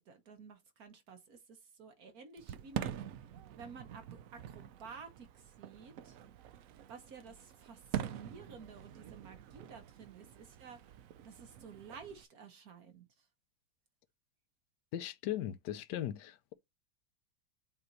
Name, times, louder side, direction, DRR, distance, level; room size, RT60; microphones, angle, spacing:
voice 1, 0.0-3.2 3.6-6.2 6.9-11.0 11.2-13.3, right 5 dB, 55° right, 1.4 m, -53 dB
Fireworks, 2.4-12.2, right 9 dB, 75° right, 0.7 m, -45 dB
voice 2, 14.9-16.5, left 12 dB, 70° left, 1.2 m, -38 dB
7.9 x 2.7 x 4.6 m
omnidirectional pair, 2.0 m